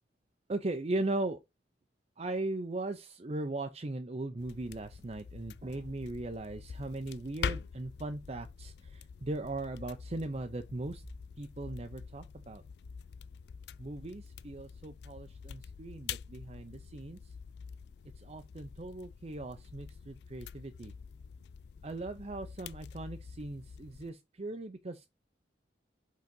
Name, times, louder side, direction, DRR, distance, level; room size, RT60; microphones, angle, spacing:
voice 1, 0.5-1.4 2.2-11.0 11.4-12.6 13.8-17.2 18.2-20.9 21.8-25.1, right 2 dB, 35° right, 0.6 m, -38 dB
sound 1, 4.4-24.1, left 6 dB, 65° left, 0.4 m, -45 dB
5.3 x 3.9 x 5.3 m
head